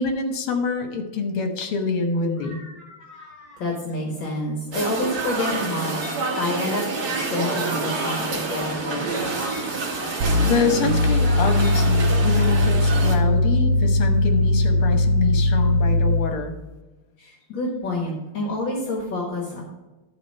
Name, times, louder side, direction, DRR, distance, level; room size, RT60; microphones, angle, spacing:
voice 1, 0.0-2.6 10.4-16.6, left 5 dB, 75° left, 5 dB, 2.0 m, -25 dB
voice 2, 2.4-6.8 7.3-9.8 15.2-15.3 15.6-15.7 17.2-19.6, left 1 dB, 60° left, -1 dB, 2.2 m, -29 dB
sound 1, 4.7-13.2, right 3 dB, 50° right, 1.7 m, -28 dB
sound 2, 10.2-16.4, left 1 dB, 80° right, 0.9 m, -20 dB
11.5 x 4.5 x 5.3 m, 1.1 s
omnidirectional pair, 2.4 m